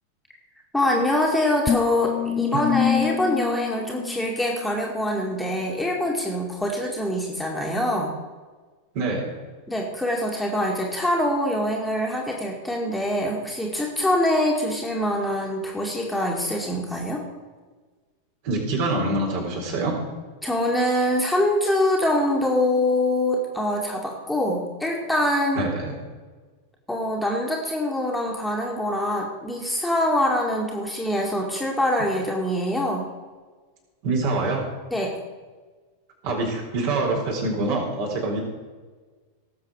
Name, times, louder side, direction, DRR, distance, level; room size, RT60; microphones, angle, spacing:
voice 1, 0.7-8.1 9.7-17.2 20.4-25.7 26.9-33.1 34.9-35.2, left 1 dB, 5° left, -2 dB, 2.3 m, -24 dB
sound 1, 1.7-5.0, left 9 dB, 25° left, 0.5 m, -27 dB
voice 2, 8.9-9.3 18.4-20.0 25.5-25.9 34.0-34.7 36.2-38.4, right 2 dB, 50° right, -1 dB, 4.1 m, -25 dB
18.5 x 7.5 x 4.9 m, 1.4 s
figure-of-eight pair, 90°, 0 cm